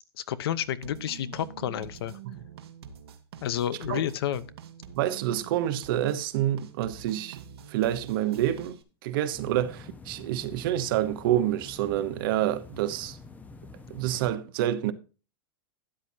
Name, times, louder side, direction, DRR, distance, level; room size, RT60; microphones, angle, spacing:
voice 1, 0.3-2.2 3.4-4.4, left 10 dB, 75° left, 0.9 m, -30 dB
sound 1, 0.8-8.8, right 8 dB, 85° right, 1.4 m, -46 dB
voice 2, 4.9-7.4 7.7-13.2 13.9-14.9, right 12 dB, 60° right, 1.0 m, -28 dB
sound 2, 9.3-14.4, left 4 dB, 10° left, 0.9 m, -47 dB
12.5 x 8.9 x 2.8 m
supercardioid pair, 130°, 13 cm